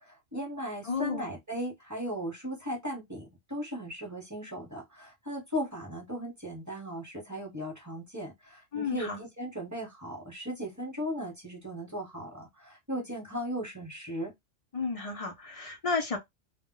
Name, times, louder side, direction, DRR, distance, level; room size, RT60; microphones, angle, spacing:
voice 1, 0.0-14.3, equal, 15° right, 0.8 m, -37 dB
voice 2, 0.8-1.3 8.7-9.2 14.7-16.2, left 4 dB, 50° left, 0.4 m, -32 dB
2.2 x 2.0 x 3.7 m
omnidirectional pair, 1.2 m